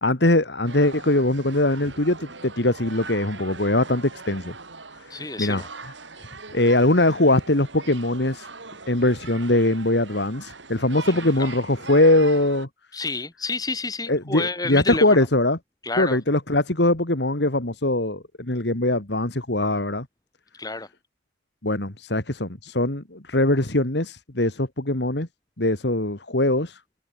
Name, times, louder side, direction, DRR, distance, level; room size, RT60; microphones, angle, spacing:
voice 1, 0.0-4.5 5.0-5.6 6.5-8.5 8.9-12.7 14.1-15.6 16.0-20.1 21.6-25.3 25.6-26.8, left 1 dB, 65° left, 2.6 m, -22 dB
sound 1, 0.7-12.7, right 4 dB, 85° right, 7.9 m, -41 dB
voice 2, 5.1-5.7 11.1-11.5 12.9-15.3 15.8-16.2 20.5-20.9, left 3 dB, 20° left, 6.8 m, -30 dB
head